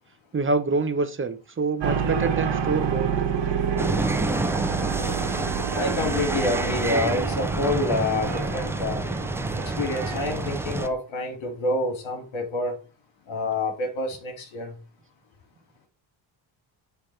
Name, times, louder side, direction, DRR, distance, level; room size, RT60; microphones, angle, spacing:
voice 1, 0.3-3.1, right 3 dB, 25° right, 1.0 m, -26 dB
sound 1, 1.8-10.9, right 7 dB, 60° right, 1.8 m, -29 dB
sound 2, 3.8-10.9, right 1 dB, 5° right, 0.5 m, -28 dB
voice 2, 5.7-9.0 9.5-12.8 13.3-14.8, left 2 dB, 70° left, 2.6 m, -27 dB
10.0 x 3.5 x 3.4 m
supercardioid pair, 80°, 49 cm